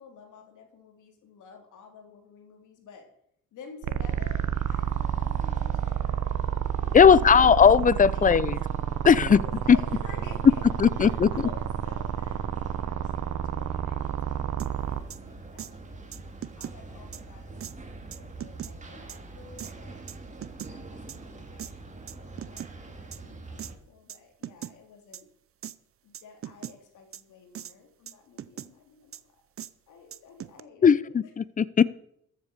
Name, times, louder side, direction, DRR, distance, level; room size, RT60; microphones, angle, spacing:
voice 1, 0.0-3.1 3.5-6.5 6.8-7.7 8.1-8.5 9.1-10.6 10.9-13.1 13.4-17.8 18.1-20.0 20.7-25.3 26.0-29.5 29.9-31.1, left 5 dB, 80° left, 4 dB, 3.2 m, -51 dB
sound 1, 3.8-15.0, right 10 dB, 80° right, 1.0 m, -29 dB
sound 2, 4.0-23.8, right 3 dB, 25° right, 2.3 m, -44 dB
voice 2, 6.9-8.6 9.0-9.4 9.7-9.8 10.8-11.3 30.8-31.8, left 7 dB, 25° left, 20 dB, 0.6 m, -18 dB
sound 3, 14.6-14.7 15.1-15.2 15.6-15.7 16.1-16.8 17.1-17.2 17.6-17.7 18.1-18.7 19.1-19.2 19.6-19.7 20.1-20.7 21.1-21.2 21.6-21.7 22.1-22.7 23.1-23.2 23.6-23.7 24.1-24.2 24.4-24.7 25.1-25.2 25.6-25.7 26.1-26.7 27.1-27.2 27.5-27.7 28.1-28.7 29.1-29.2 29.6-29.7 30.1-30.6, right 10 dB, 45° right, 0.7 m, -39 dB
14.0 x 8.2 x 6.8 m, 0.70 s
cardioid pair, 90°, 30 cm